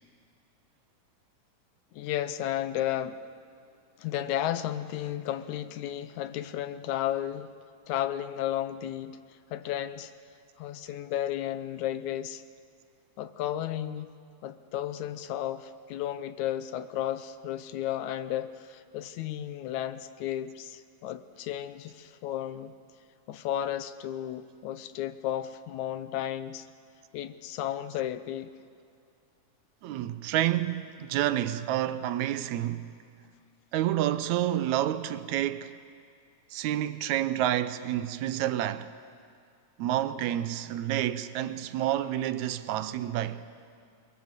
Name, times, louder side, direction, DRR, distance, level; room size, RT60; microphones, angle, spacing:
voice 1, 1.9-3.2 4.0-7.6 7.9-10.1 10.6-12.4 13.2-14.1 14.4-22.7 23.3-26.7 27.1-28.5, left 12 dB, 80° left, 2.2 m, -33 dB
voice 2, 29.8-32.8 33.7-35.7 36.5-38.9 39.8-43.5, right 12 dB, 80° right, 2.0 m, -29 dB
22.5 x 22.0 x 7.4 m
omnidirectional pair, 3.4 m